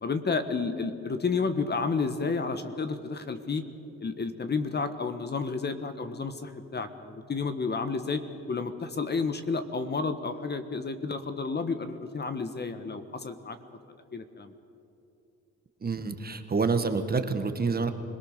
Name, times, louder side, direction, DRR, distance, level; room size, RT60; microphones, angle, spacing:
voice 1, 0.0-3.6 4.0-8.2 8.5-13.6 14.1-14.5, left 4 dB, 35° left, 9 dB, 1.4 m, -31 dB
voice 2, 15.8-17.9, right 4 dB, 30° right, 8 dB, 1.5 m, -27 dB
25.5 x 18.5 x 6.7 m, 2.7 s
cardioid pair, 90°, 30 cm